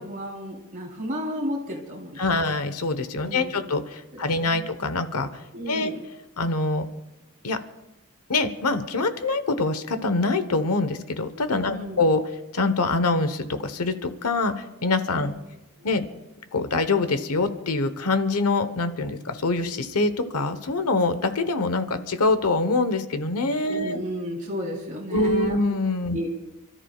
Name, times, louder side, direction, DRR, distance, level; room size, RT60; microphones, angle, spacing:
voice 1, 0.0-2.6 3.2-3.7 4.1-4.7 5.5-6.0 11.7-12.0 15.1-15.4 15.8-15.9 23.7-25.6 26.1-26.3, equal, 35° right, -2 dB, 3.9 m, -33 dB
voice 2, 2.2-5.3 5.7-5.9 6.4-6.9 7.4-7.6 8.3-12.2 12.5-15.3 15.8-16.0 16.5-24.0 25.1-26.2, left 3 dB, 85° left, 10 dB, 1.2 m, -24 dB
30.0 x 13.5 x 2.4 m, 0.99 s
head